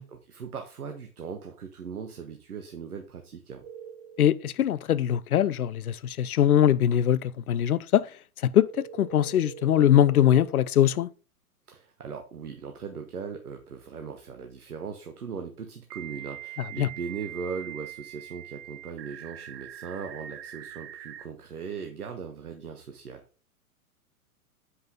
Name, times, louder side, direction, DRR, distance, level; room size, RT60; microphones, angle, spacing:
voice 1, 0.0-3.6 11.7-23.2, right 6 dB, 75° right, 1.2 m, -39 dB
sound 1, 3.6-4.5 8.5-10.5 13.1-13.2 15.9-21.3, right 11 dB, 45° right, 1.0 m, -43 dB
voice 2, 4.2-8.1 8.4-11.1 16.8-16.9, left 10 dB, 75° left, 0.6 m, -22 dB
7.9 x 5.5 x 3.9 m
figure-of-eight pair, 110°, 45 cm